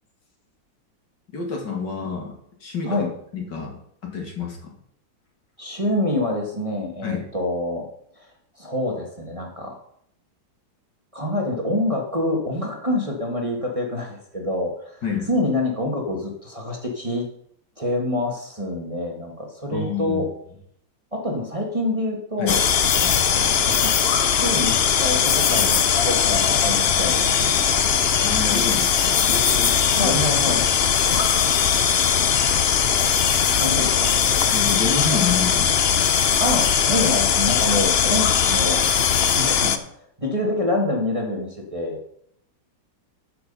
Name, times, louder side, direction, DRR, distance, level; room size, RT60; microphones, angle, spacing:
voice 1, 1.3-2.3 2.6-4.7 7.0-7.3 15.0-15.3 19.7-20.2 22.4-22.6 22.9-23.5 28.2-30.2 34.5-35.7, left 5 dB, 65° left, 1 dB, 3.0 m, -29 dB
voice 2, 5.6-7.9 8.2-8.3 8.6-9.8 11.1-15.0 15.3-17.3 17.8-20.3 21.1-22.6 23.3-24.0 24.3-27.6 29.9-30.6 33.6-34.2 36.4-38.8 39.4-39.9 40.2-42.0, left 1 dB, 20° right, 0 dB, 1.8 m, -26 dB
sound 1, 22.5-39.8, left 7 dB, 85° left, 0.5 m, -19 dB
13.5 x 6.8 x 5.5 m, 0.70 s
omnidirectional pair, 2.1 m